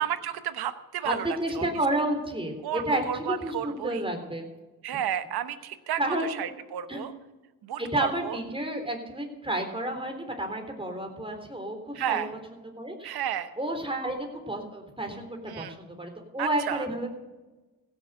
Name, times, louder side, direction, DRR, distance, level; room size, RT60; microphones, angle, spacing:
voice 1, 0.0-1.7 2.6-4.0 4.8-7.1 7.6-8.4 11.9-12.3 13.0-13.5 15.5-15.7 16.4-16.9, right 10 dB, 80° right, 12 dB, 1.0 m, -32 dB
voice 2, 1.0-4.5 6.0-6.5 6.9-7.0 7.8-12.2 12.8-13.2 13.6-17.2, right 1 dB, 15° right, 3 dB, 3.8 m, -31 dB
16.0 x 7.4 x 6.6 m, 1.2 s
cardioid pair, 60°, 37 cm